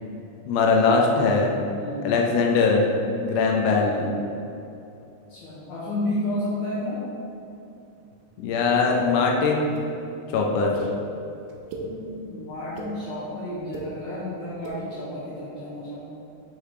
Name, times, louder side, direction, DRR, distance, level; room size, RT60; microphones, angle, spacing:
voice 1, 0.5-1.5 2.0-2.8 3.2-4.1 8.4-9.7 10.3-10.7, left 4 dB, 80° left, 0 dB, 2.4 m, -21 dB
voice 2, 1.8-2.2 5.3-7.0 11.8-16.2, left 1 dB, 65° left, -9 dB, 2.1 m, -31 dB
sound 1, 9.8-9.9 10.7-10.9 11.5-11.9 12.5-12.9 13.6-13.9 14.5-14.8, right 4 dB, 85° right, 2.5 m, -36 dB
6.5 x 3.5 x 4.7 m, 2.8 s
omnidirectional pair, 4.3 m